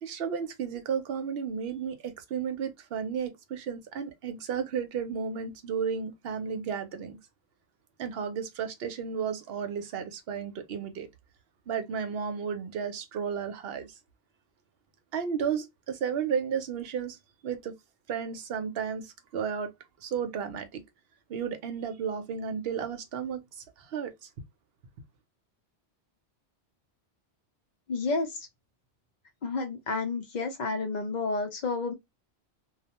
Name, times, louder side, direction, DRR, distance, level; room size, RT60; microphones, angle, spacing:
voice 1, 0.0-7.2 8.0-11.1 11.7-14.0 15.1-17.2 17.4-17.7 18.1-19.7 20.0-20.8 21.3-24.3, right 7 dB, 65° right, 0.8 m, -33 dB
voice 2, 27.9-28.5 29.4-31.9, left 3 dB, 50° left, 0.6 m, -30 dB
2.3 x 2.1 x 2.8 m
omnidirectional pair, 1.1 m